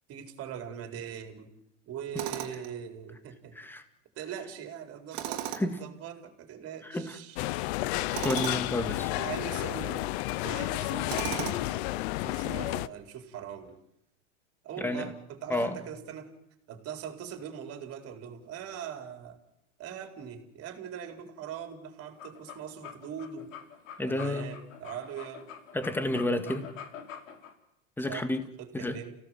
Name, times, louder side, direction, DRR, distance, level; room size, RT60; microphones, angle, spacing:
voice 1, 0.1-1.5 1.8-3.6 4.2-7.7 9.0-13.8 14.6-16.3 16.7-19.4 19.8-23.5 24.1-25.5 28.1-28.3 28.6-29.2, right 8 dB, 40° right, 6 dB, 4.3 m, -41 dB
Tools, 2.2-2.7 5.1-5.8 8.1-8.7 11.1-11.8, right 11 dB, 60° right, 3.2 m, -36 dB
voice 2, 6.8-7.2 8.2-9.1 14.8-15.1 15.5-15.8 24.0-24.6 25.7-26.7 28.0-28.4 28.7-29.0, left 1 dB, 5° left, 8 dB, 2.3 m, -30 dB
sound 1, 7.3-12.9, left 18 dB, 55° left, 0.9 m, -31 dB
sound 2, 22.0-27.5, left 8 dB, 80° left, 5.0 m, -45 dB
30.0 x 17.0 x 7.8 m, 0.78 s
supercardioid pair, 125°, 37 cm